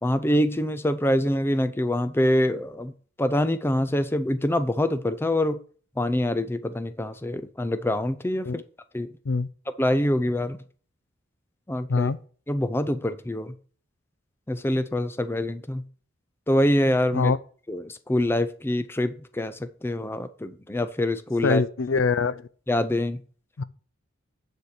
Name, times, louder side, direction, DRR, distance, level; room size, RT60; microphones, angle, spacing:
voice 1, 0.0-2.9 3.2-5.6 6.0-8.6 8.9-9.1 9.7-10.6 11.7-12.1 12.5-13.5 14.5-15.8 16.5-17.3 17.7-21.6 22.7-23.2, left 1 dB, 10° left, 0.5 m, -25 dB
voice 2, 21.4-22.5 23.6-23.7, left 4 dB, 65° left, 0.5 m, -23 dB
9.7 x 4.4 x 6.5 m
head